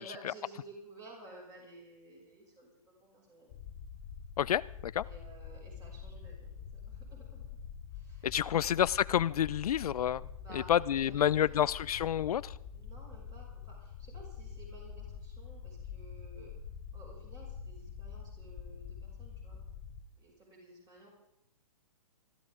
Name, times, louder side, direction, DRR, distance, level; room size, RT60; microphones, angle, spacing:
voice 1, 0.0-3.6 5.0-7.4 7.9-8.7 10.4-11.7 12.7-16.5 16.9-19.6 20.2-21.1, right 2 dB, 20° right, -2 dB, 6.3 m, -54 dB
sound 1, 3.5-20.0, left 7 dB, 30° left, 1.0 m, -46 dB
voice 2, 4.4-5.0 8.2-10.2 10.5-12.5, left 10 dB, 80° left, 19 dB, 0.4 m, -29 dB
21.5 x 14.0 x 3.7 m, 0.78 s
hypercardioid pair, 155°, 19 cm